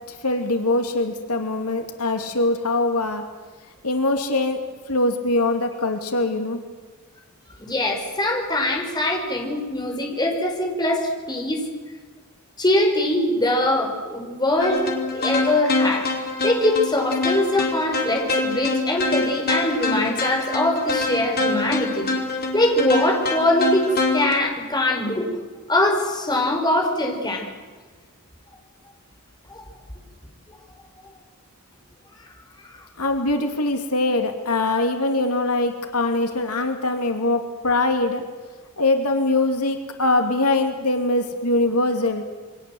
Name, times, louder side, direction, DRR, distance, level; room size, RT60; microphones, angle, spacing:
voice 1, 0.1-3.2 3.8-4.6 4.9-6.6 33.0-38.2 38.8-42.2, left 2 dB, 80° left, 5 dB, 2.7 m, -22 dB
voice 2, 7.6-11.6 12.6-14.9 15.1-16.1 16.4-22.1 22.5-25.3 25.7-27.5 29.5-29.7, left 1 dB, 20° left, 2 dB, 5.4 m, -22 dB
sound 1, 14.6-24.3, left 3 dB, 45° left, 4.6 m, -25 dB
28.5 x 24.0 x 7.9 m, 1.4 s
head